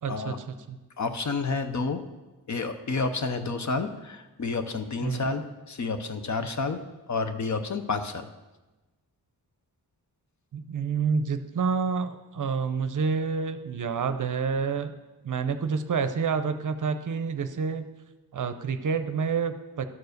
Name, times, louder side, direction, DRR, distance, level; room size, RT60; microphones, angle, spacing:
voice 1, 0.0-0.8 5.0-5.4 10.5-14.9 15.2-17.9 18.3-19.9, right 5 dB, 50° right, 10 dB, 0.6 m, -28 dB
voice 2, 1.0-2.0 2.5-6.8 7.1-8.3, left 4 dB, 45° left, 8 dB, 0.7 m, -30 dB
12.0 x 4.7 x 6.5 m, 1.1 s
wide cardioid pair, 170°, 39 cm